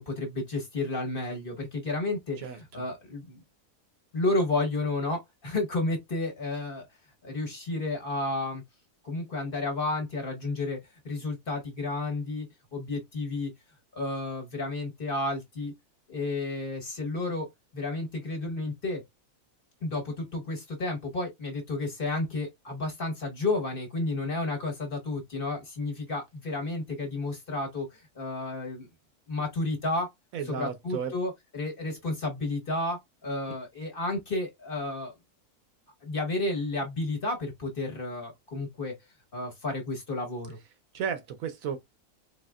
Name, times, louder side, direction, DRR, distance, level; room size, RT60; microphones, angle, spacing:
voice 1, 0.0-3.4 4.1-6.9 7.2-8.6 9.0-10.8 11.0-13.5 13.9-15.7 16.1-19.0 19.8-28.9 29.3-30.1 30.4-35.1 36.0-38.9 39.3-40.6, left 2 dB, 40° left, 1.3 m, -31 dB
voice 2, 30.3-31.1 40.9-41.8, right 7 dB, 70° right, 1.0 m, -33 dB
4.1 x 3.3 x 2.3 m
omnidirectional pair, 1.6 m